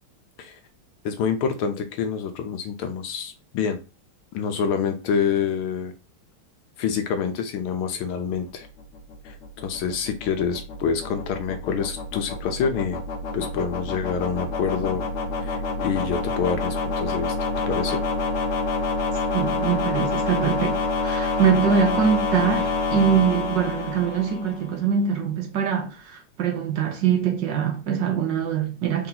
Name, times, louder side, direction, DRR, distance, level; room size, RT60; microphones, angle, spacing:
voice 1, 1.0-3.8 4.3-5.9 6.8-8.7 9.2-9.4 9.6-13.0 13.3-15.0 15.4-18.0, left 6 dB, 80° left, 1.6 m, -27 dB
sound 1, 8.6-24.8, left 3 dB, 65° left, 1.4 m, -27 dB
voice 2, 19.3-29.1, right 7 dB, 65° right, 1.3 m, -23 dB
4.5 x 2.9 x 3.8 m
omnidirectional pair, 2.4 m